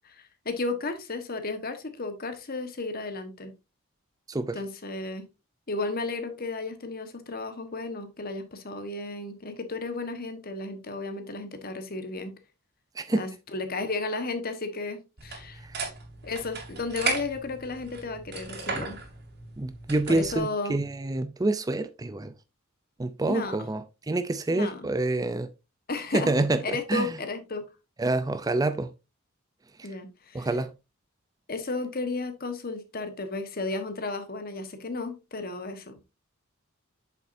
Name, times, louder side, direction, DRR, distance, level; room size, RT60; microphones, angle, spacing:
voice 1, 0.0-3.5 4.5-5.3 5.7-12.3 13.1-15.6 16.2-19.0 20.1-20.8 23.2-23.6 24.5-24.9 25.9-26.3 26.6-27.6 29.8-30.5 31.5-36.0, left 3 dB, 45° left, 1.3 m, -33 dB
voice 2, 4.3-4.6 13.0-13.2 19.6-22.3 23.0-25.5 26.1-27.1 28.0-28.9 30.3-30.7, right 2 dB, 15° right, 0.4 m, -27 dB
sound 1, 15.2-20.4, right 4 dB, 50° right, 2.5 m, -36 dB
8.1 x 7.1 x 2.6 m
head